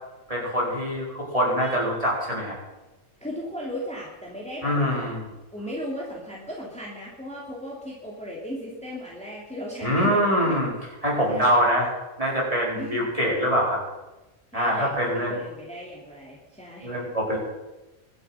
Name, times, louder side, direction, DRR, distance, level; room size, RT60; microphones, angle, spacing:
voice 1, 0.3-2.6 4.6-5.2 9.8-10.7 11.0-11.9 12.2-13.8 14.5-15.4 16.8-17.4, equal, 25° right, -4 dB, 4.5 m, -24 dB
voice 2, 1.5-2.0 3.2-5.1 5.5-10.6 11.3-11.6 12.7-13.1 14.5-17.0, equal, 5° left, -4 dB, 2.9 m, -37 dB
23.5 x 8.2 x 5.8 m, 1.1 s
omnidirectional pair, 1.5 m